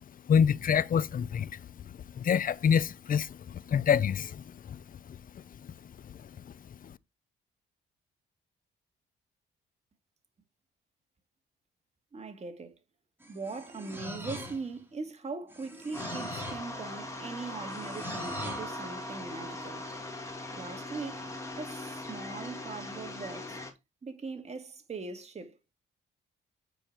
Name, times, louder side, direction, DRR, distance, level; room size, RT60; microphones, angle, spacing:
voice 1, 0.3-1.5 2.2-4.8, left 7 dB, 45° left, 0.6 m, -26 dB
voice 2, 12.1-12.8 13.3-19.9 20.6-21.2 21.6-23.6 24.0-25.6, right 4 dB, 35° right, 2.0 m, -40 dB
sound 1, 13.2-14.8 15.5-16.7 17.7-18.7, equal, 10° right, 2.9 m, -42 dB
sound 2, 15.9-23.7, left 1 dB, 15° left, 2.6 m, -40 dB
9.1 x 5.1 x 4.4 m
cardioid pair, 90°, 20 cm